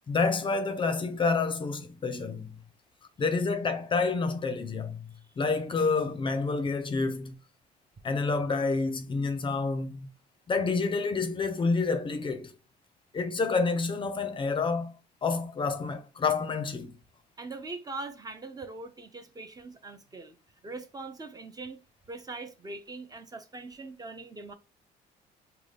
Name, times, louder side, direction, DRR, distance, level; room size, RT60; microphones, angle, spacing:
voice 1, 0.1-2.6 3.2-5.1 5.4-7.3 8.0-10.1 10.5-12.5 13.1-14.9 15.2-16.9, left 4 dB, 30° left, 0.5 m, -28 dB
voice 2, 17.4-20.3 20.6-21.8 22.1-24.5, right 3 dB, 20° right, 0.5 m, -41 dB
3.6 x 2.3 x 3.3 m
cardioid pair, 110°, 17 cm